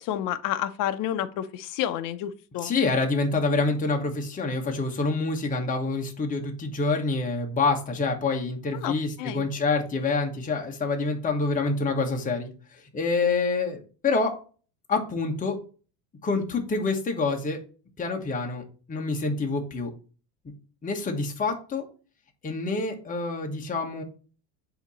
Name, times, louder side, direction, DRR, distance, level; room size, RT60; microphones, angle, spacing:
voice 1, 0.0-2.7 8.7-9.5, left 11 dB, 45° left, 0.7 m, -30 dB
voice 2, 2.6-14.3 14.9-15.6 16.2-17.6 18.0-18.6 18.9-19.9 20.4-20.5 20.8-21.9 22.4-24.0, left 3 dB, 15° left, 1.1 m, -27 dB
7.9 x 2.9 x 4.1 m
supercardioid pair, 115°, 46 cm